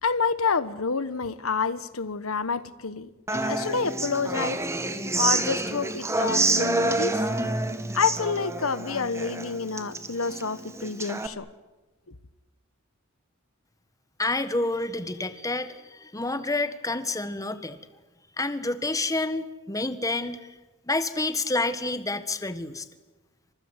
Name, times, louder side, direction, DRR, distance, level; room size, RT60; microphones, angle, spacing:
voice 1, 0.0-4.6 5.1-7.2 7.9-11.4, left 5 dB, 85° left, 1.2 m, -28 dB
Human voice / Acoustic guitar, 3.3-11.3, right 2 dB, 15° right, 1.9 m, -28 dB
voice 2, 14.2-17.8 18.4-20.5 20.9-22.9, left 2 dB, 15° left, 1.5 m, -28 dB
28.5 x 26.0 x 8.1 m
head